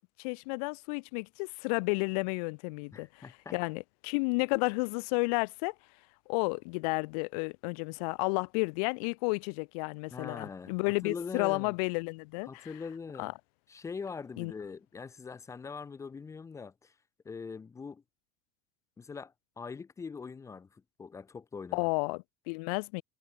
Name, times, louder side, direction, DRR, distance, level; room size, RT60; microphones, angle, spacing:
voice 1, 0.2-3.2 3.5-5.7 6.3-12.7 13.2-13.3 14.4-14.5 21.7-23.0, left 32 dB, 65° left, 1.6 m, -32 dB
voice 2, 2.9-3.5 10.1-10.7 11.0-11.7 12.5-13.3 13.7-16.9 17.2-18.0 19.0-21.9, left 5 dB, 15° left, 3.0 m, -42 dB
cardioid pair, 165°, 21 cm